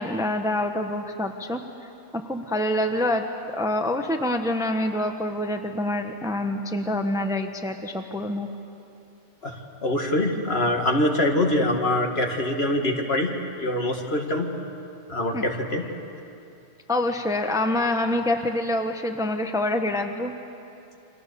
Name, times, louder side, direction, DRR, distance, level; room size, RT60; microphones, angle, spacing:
voice 1, 0.0-1.6 2.1-3.3 3.6-8.5 15.3-15.4 16.9-20.3, left 1 dB, 5° right, 5 dB, 1.1 m, -26 dB
voice 2, 9.8-13.3 13.6-14.5 15.1-15.8, left 1 dB, 50° left, 2 dB, 2.3 m, -24 dB
29.5 x 25.0 x 6.9 m, 2.7 s
omnidirectional pair, 1.3 m